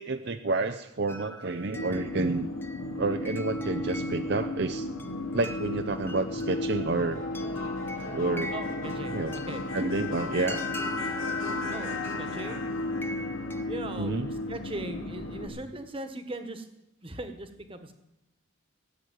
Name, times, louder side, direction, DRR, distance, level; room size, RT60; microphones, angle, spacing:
voice 1, 0.0-2.5 3.0-4.9 5.3-7.2 8.1-8.5 9.1-9.3 9.7-10.6 12.5-12.6 14.0-14.3, right 3 dB, 55° right, 8 dB, 0.6 m, -29 dB
sound 1, 1.1-13.7, equal, 10° left, 0.8 m, -43 dB
sound 2, 1.8-15.5, left 2 dB, 80° left, 2.9 m, -34 dB
voice 2, 8.5-9.6 11.7-12.7 13.7-16.7 17.0-17.9, right 1 dB, 25° right, 8 dB, 1.4 m, -39 dB
17.0 x 8.2 x 9.3 m, 0.90 s
head